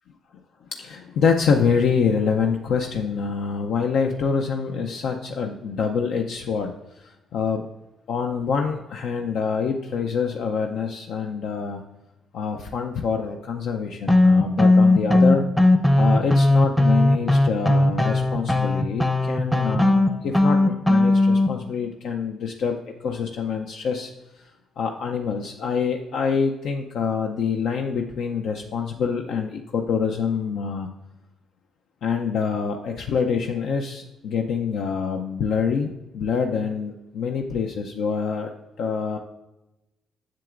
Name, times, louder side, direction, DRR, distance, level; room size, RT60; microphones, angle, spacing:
voice 1, 0.7-6.7 7.0-7.7 8.1-11.8 12.3-15.5 16.0-24.1 24.8-30.9 32.0-35.9 36.1-38.5 38.8-39.2, left 6 dB, 75° left, 3 dB, 0.5 m, -26 dB
sound 1, 14.1-21.5, left 2 dB, 5° left, 0.6 m, -18 dB
7.5 x 7.0 x 2.5 m, 0.97 s
cardioid pair, 90°, 0 cm